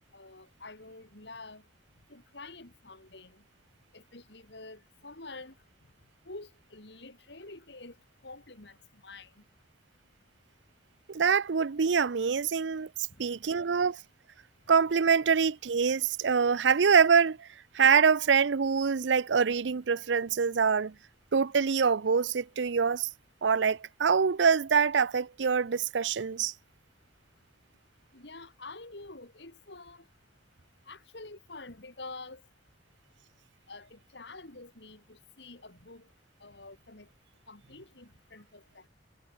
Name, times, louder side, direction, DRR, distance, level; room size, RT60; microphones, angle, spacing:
voice 1, 0.1-1.6 2.1-3.4 3.9-5.5 6.2-8.0 8.2-9.4 13.5-13.6 28.1-30.0 30.9-32.4 33.7-36.1 36.4-37.1 37.5-38.9, left 3 dB, 70° left, 3.2 m, -47 dB
voice 2, 11.1-12.9 13.2-14.0 14.7-17.5 17.7-20.9 21.3-23.1 23.4-26.5, right 6 dB, 75° right, 0.6 m, -25 dB
head